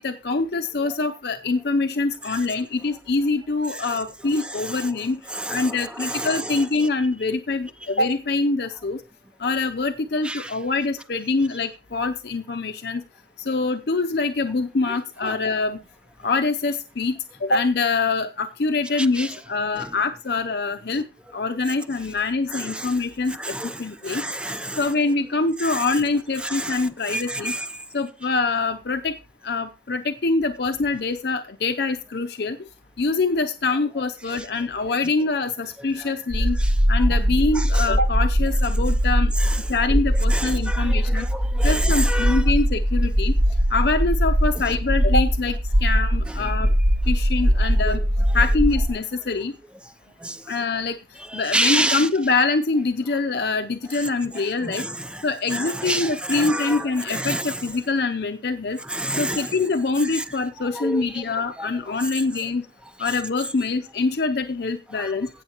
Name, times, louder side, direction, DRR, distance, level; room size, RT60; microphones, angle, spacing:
voice 1, 0.0-5.2 5.5-9.0 9.4-13.0 13.4-15.8 16.2-21.0 21.3-23.4 23.8-24.2 24.8-27.5 27.9-29.2 29.4-32.6 33.0-36.6 36.9-39.3 39.7-41.3 41.6-43.4 43.7-46.7 47.1-48.0 48.3-49.5 50.5-51.0 51.3-54.8 55.2-58.8 59.2-62.6 63.0-65.3, left 3 dB, 60° left, 0.6 m, -24 dB
voice 2, 5.3-6.6 10.2-10.5 15.2-15.4 19.2-19.3 22.5-22.9 23.4-23.8 24.1-24.8 25.6-25.8 26.4-26.8 27.1-27.7 36.6-36.7 37.5-37.9 39.4-39.6 40.3-42.4 47.8-48.0 50.2-50.3 51.3-52.1 54.6-55.2 55.5-57.6 58.9-59.5 60.2-60.3 60.8-61.0 61.6-61.7 65.0-65.1, right 1 dB, 5° right, 0.5 m, -28 dB
sound 1, 36.3-48.9, equal, 75° right, 1.2 m, -21 dB
16.5 x 7.2 x 2.9 m
head